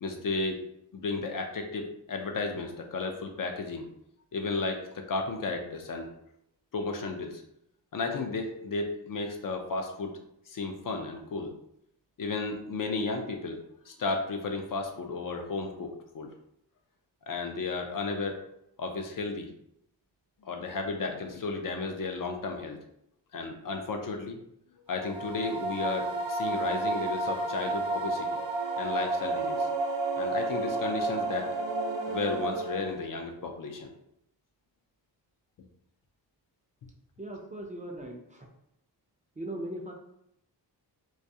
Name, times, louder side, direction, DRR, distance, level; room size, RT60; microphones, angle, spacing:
voice 1, 0.0-0.6 0.9-3.9 4.3-6.1 6.7-7.4 7.9-10.2 10.5-11.5 12.2-13.6 13.9-16.3 17.3-18.4 18.8-19.5 20.4-22.8 23.3-24.4 24.9-28.3 28.8-29.7 30.1-31.5 32.1-33.9, left 3 dB, 50° left, 3 dB, 0.4 m, -33 dB
sound 1, 25.0-33.1, right 2 dB, 85° right, 0.6 m, -31 dB
voice 2, 37.2-38.5 39.4-39.9, right 1 dB, 20° right, -1 dB, 0.4 m, -39 dB
2.3 x 2.2 x 2.6 m, 0.76 s
cardioid pair, 55°, 43 cm